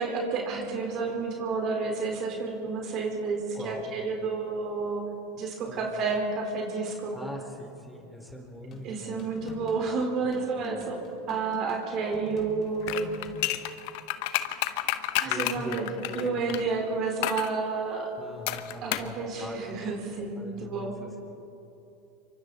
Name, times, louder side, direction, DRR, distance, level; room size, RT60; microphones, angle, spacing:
voice 1, 0.0-5.1 5.3-7.1 8.8-13.2 15.2-15.9 16.1-18.1 18.8-21.0, right 4 dB, 50° right, 1 dB, 4.2 m, -30 dB
voice 2, 3.5-3.9 5.7-5.9 7.1-9.6 9.8-9.9 10.2-10.8 15.2-15.8 16.0-16.6 18.2-19.8 20.1-21.3, left 1 dB, 5° left, 0 dB, 4.8 m, -42 dB
sound 1, 8.7-13.7, left 4 dB, 40° left, 4.1 m, -46 dB
sound 2, 12.8-16.6 17.2-17.5 18.5-19.1 19.4-19.5, left 15 dB, 65° left, 1.0 m, -30 dB
27.0 x 24.5 x 4.2 m, 2.8 s
hypercardioid pair, 95°, 0 cm